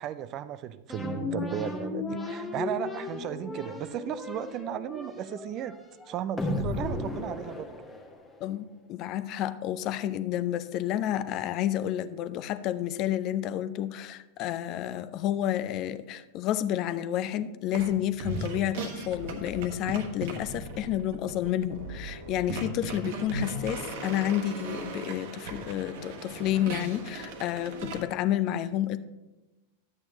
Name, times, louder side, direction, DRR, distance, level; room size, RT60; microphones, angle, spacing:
voice 1, 0.0-5.8 6.1-7.7, right 11 dB, 35° right, 15 dB, 0.4 m, -35 dB
sound 1, 0.9-8.4, left 2 dB, 10° left, 1.1 m, -35 dB
voice 2, 8.4-29.0, left 11 dB, 40° left, 14 dB, 0.4 m, -30 dB
sound 2, 17.7-17.9 18.2-28.0, right 2 dB, 50° right, 1.1 m, -37 dB
11.0 x 8.7 x 2.9 m, 1.0 s
figure-of-eight pair, 90°, 0 cm